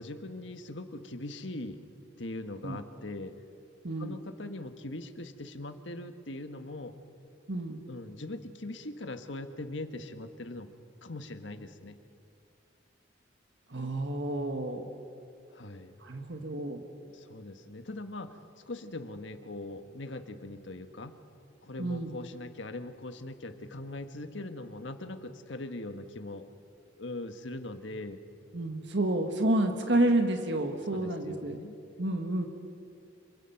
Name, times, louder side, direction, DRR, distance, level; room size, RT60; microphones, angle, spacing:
voice 1, 0.0-1.9 2.2-3.3 4.0-7.0 7.8-10.7 11.0-12.0 15.5-15.9 17.1-21.2 21.6-26.5 27.0-28.2 30.9-31.8, left 2 dB, 70° left, 8 dB, 1.4 m, -41 dB
voice 2, 13.7-14.9 16.0-16.8 21.8-22.1 28.5-31.6 32.0-32.5, right 1 dB, 65° right, 4 dB, 1.7 m, -29 dB
27.0 x 24.5 x 5.9 m, 2.6 s
head